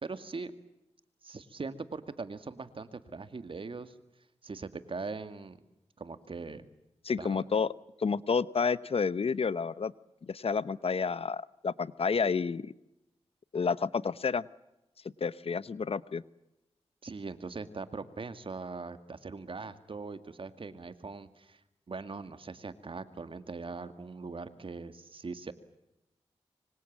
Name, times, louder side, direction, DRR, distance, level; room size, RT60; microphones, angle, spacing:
voice 1, 0.0-0.5 1.2-3.9 4.4-5.6 6.0-6.7 7.2-7.4 17.0-21.6 21.9-25.5, right 4 dB, 55° right, 11 dB, 2.1 m, -41 dB
voice 2, 7.0-7.7 8.0-9.9 10.2-12.7 13.5-14.4 15.2-16.2, left 5 dB, 60° left, 17 dB, 0.9 m, -30 dB
25.5 x 25.5 x 7.4 m, 0.91 s
wide cardioid pair, 75°, 11 cm